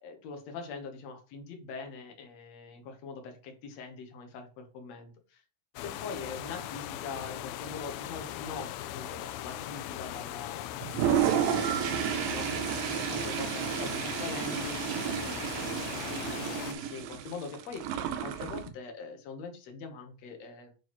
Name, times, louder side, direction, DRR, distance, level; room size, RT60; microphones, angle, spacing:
voice 1, 0.0-5.4 5.8-12.5 12.9-14.8 15.2-17.8 18.2-20.7, left 4 dB, 65° left, 4 dB, 1.9 m, -43 dB
sound 1, 5.8-16.7, left 12 dB, 85° left, 2.4 m, -39 dB
Toilet flush, 10.8-18.7, right 10 dB, 80° right, 2.3 m, -31 dB
9.1 x 3.9 x 3.0 m, 0.33 s
omnidirectional pair, 4.2 m